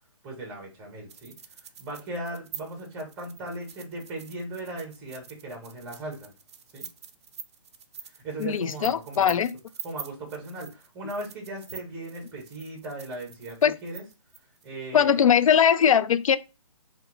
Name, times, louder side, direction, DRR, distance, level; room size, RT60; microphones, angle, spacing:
voice 1, 0.2-1.3 1.8-6.3 6.7-6.8 8.0-9.4 9.8-14.0 14.6-15.2, right 2 dB, 10° right, 0.6 m, -38 dB
sound 1, 1.1-14.7, right 7 dB, 50° right, 0.4 m, -44 dB
voice 2, 8.4-9.5 13.6-13.7 14.9-16.4, left 8 dB, 70° left, 0.4 m, -20 dB
2.8 x 2.2 x 3.8 m
hypercardioid pair, 165°, 18 cm